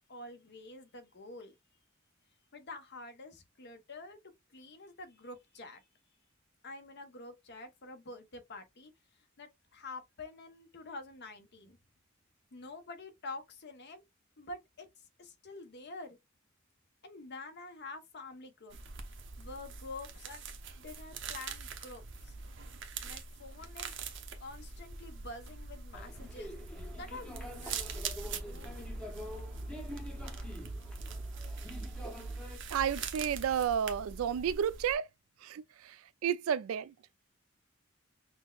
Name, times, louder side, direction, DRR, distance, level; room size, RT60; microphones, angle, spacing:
voice 1, 0.0-1.6 2.5-4.2 4.5-5.8 6.6-8.9 9.4-11.8 12.5-14.0 14.4-16.2 17.0-18.8 19.4-20.4 20.8-22.3 23.0-24.0 24.4-26.5 26.9-29.2, left 2 dB, 55° left, 0.8 m, -47 dB
sound 1, 18.7-34.9, right 4 dB, 60° right, 0.7 m, -43 dB
sound 2, 25.9-32.6, left 1 dB, 5° left, 0.7 m, -47 dB
voice 2, 32.7-35.1 35.4-36.9, right 8 dB, 80° right, 0.3 m, -32 dB
6.0 x 2.1 x 2.3 m
head